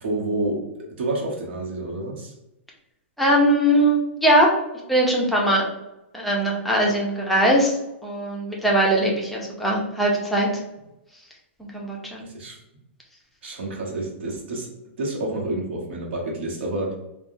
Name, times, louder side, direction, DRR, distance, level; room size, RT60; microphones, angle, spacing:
voice 1, 0.0-2.3 12.2-12.6 13.4-14.7 15.0-16.9, right 2 dB, 65° right, -1 dB, 1.0 m, -29 dB
voice 2, 3.2-4.5 4.9-5.6 6.1-7.7 8.0-10.5 11.6-12.3, right 1 dB, ahead, -3 dB, 0.5 m, -20 dB
3.4 x 2.1 x 2.6 m, 0.90 s
hypercardioid pair, 155°, 7 cm